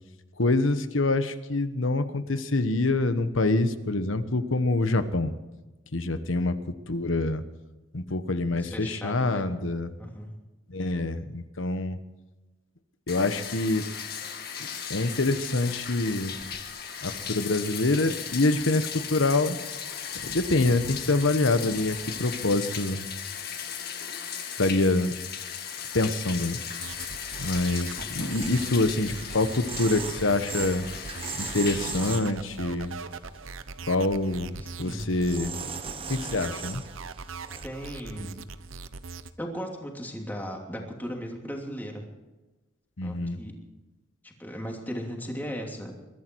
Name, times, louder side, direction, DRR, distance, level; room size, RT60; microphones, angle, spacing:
voice 1, 0.4-5.3 5.9-6.5 6.9-7.4 7.9-9.9 10.7-12.0 13.1-13.8 14.9-16.3 17.0-19.6 20.2-23.1 24.6-25.1 25.9-26.6 27.4-30.9 31.4-33.0 33.8-34.5 34.8-35.6 36.1-36.8 43.0-43.4, left 2 dB, 75° left, 11 dB, 1.2 m, -26 dB
voice 2, 8.4-9.4 10.0-10.3 27.9-28.1 34.6-35.1 37.6-38.4 39.4-42.0 43.0-43.5 44.2-45.9, equal, 10° left, 0 dB, 2.8 m, -37 dB
Bathtub (filling or washing), 13.1-32.2, left 7 dB, 50° left, 2.0 m, -37 dB
sound 1, 26.8-39.3, right 4 dB, 85° right, 0.9 m, -41 dB
sound 2, 28.3-32.7 33.1-33.7 34.7-35.0 35.3-37.6, right 5 dB, 30° right, 1.2 m, -39 dB
22.5 x 12.5 x 4.7 m, 1.1 s
head